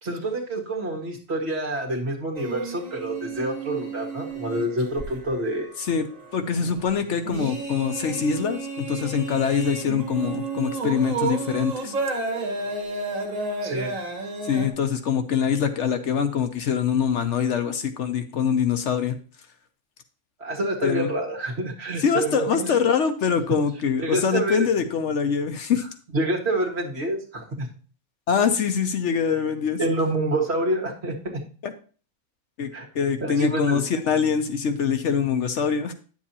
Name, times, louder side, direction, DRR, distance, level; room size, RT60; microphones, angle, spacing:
voice 1, 0.0-5.7 13.6-14.1 20.4-22.8 24.0-24.7 26.1-27.7 29.8-31.4 32.7-32.9 33.2-33.9, right 1 dB, 50° right, 0 dB, 2.0 m, -27 dB
sound 1, 2.4-14.7, right 3 dB, 70° right, 1.8 m, -32 dB
voice 2, 6.3-11.9 14.4-19.1 20.8-21.1 22.0-25.8 28.3-29.8 31.6-31.7 32.6-35.9, left 7 dB, 65° left, 8 dB, 1.0 m, -24 dB
9.8 x 7.4 x 2.9 m, 0.39 s
omnidirectional pair, 1.4 m